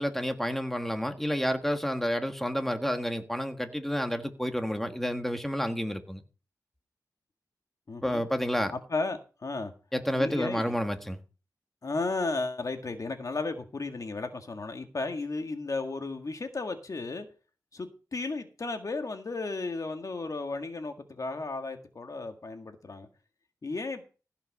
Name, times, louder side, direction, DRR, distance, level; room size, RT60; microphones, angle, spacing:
voice 1, 0.0-6.2 8.0-8.7 9.9-11.2, equal, 5° left, 1.6 m, -30 dB
voice 2, 7.9-8.2 8.7-9.7 10.1-10.8 11.8-17.3 17.7-23.1 23.6-24.1, left 3 dB, 55° left, 1.9 m, -34 dB
15.5 x 5.7 x 5.4 m
wide cardioid pair, 70°, 7 cm